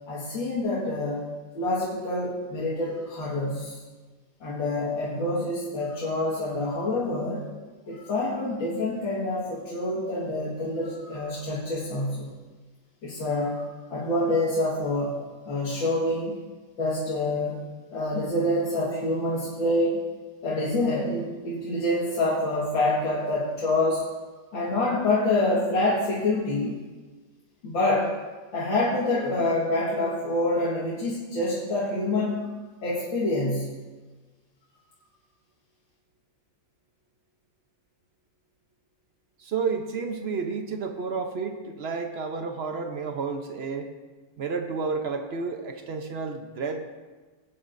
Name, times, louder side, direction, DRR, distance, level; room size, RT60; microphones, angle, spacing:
voice 1, 0.1-1.3 1.6-3.8 4.4-7.4 7.9-12.3 13.0-15.2 15.5-16.4 16.8-17.6 17.9-20.1 20.4-24.1 24.5-26.8 27.6-28.1 28.5-32.5 32.8-33.7, left 2 dB, 85° left, -7 dB, 2.5 m, -26 dB
voice 2, 39.4-43.9 44.4-46.9, right 4 dB, 65° right, 5 dB, 0.6 m, -31 dB
17.5 x 9.5 x 2.6 m, 1.3 s
omnidirectional pair, 2.0 m